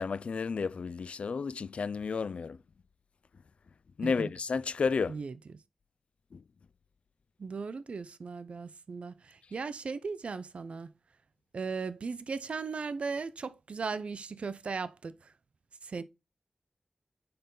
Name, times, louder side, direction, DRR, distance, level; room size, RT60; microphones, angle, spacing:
voice 1, 0.0-2.6 4.0-5.2 6.3-6.4, left 5 dB, 75° left, 0.3 m, -32 dB
voice 2, 7.4-10.9 11.5-15.3 15.8-16.0, right 4 dB, 75° right, 0.5 m, -37 dB
6.7 x 5.3 x 3.8 m
wide cardioid pair, 65°, 2 cm